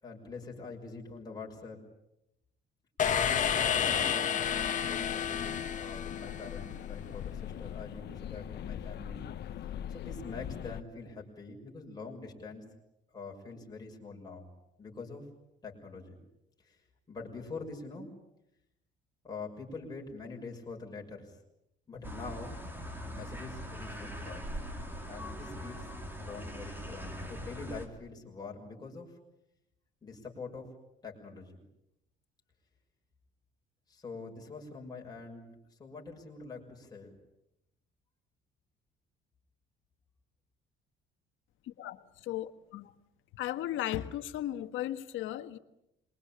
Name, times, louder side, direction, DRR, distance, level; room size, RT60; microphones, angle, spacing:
voice 1, 0.0-1.8 3.0-9.2 9.6-12.7 13.1-14.5 14.8-15.2 15.6-16.2 16.6-16.8 17.1-18.1 19.2-21.4 21.9-22.6 23.0-24.5 25.1-25.9 26.2-29.2 30.0-30.7 31.0-31.6 33.9-37.2, left 4 dB, 20° left, 6.6 m, -45 dB
sound 1, 3.0-6.8, left 8 dB, 40° left, 1.9 m, -30 dB
sound 2, 4.4-10.8, left 10 dB, 55° left, 1.2 m, -41 dB
sound 3, 22.0-27.9, equal, 10° right, 3.6 m, -41 dB
voice 2, 42.3-42.9 43.3-45.6, left 13 dB, 75° left, 1.6 m, -36 dB
27.0 x 22.5 x 8.8 m
cardioid pair, 140°, 21 cm